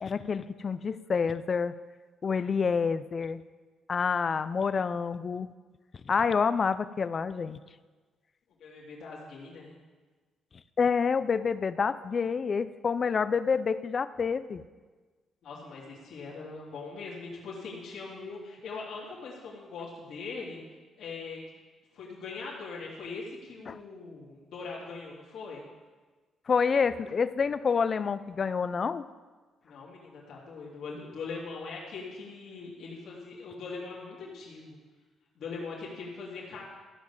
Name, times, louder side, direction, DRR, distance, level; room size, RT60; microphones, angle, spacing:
voice 1, 0.0-1.7 2.2-3.4 3.9-5.5 6.1-7.6 10.8-14.6 23.7-23.8 26.5-29.0, left 5 dB, 40° left, 14 dB, 0.5 m, -28 dB
voice 2, 8.6-9.7 15.4-20.6 21.0-21.4 21.9-25.6 29.6-34.8 35.3-36.6, left 4 dB, 70° left, -5 dB, 3.1 m, -41 dB
14.0 x 5.3 x 7.3 m, 1.3 s
cardioid pair, 90°, 0 cm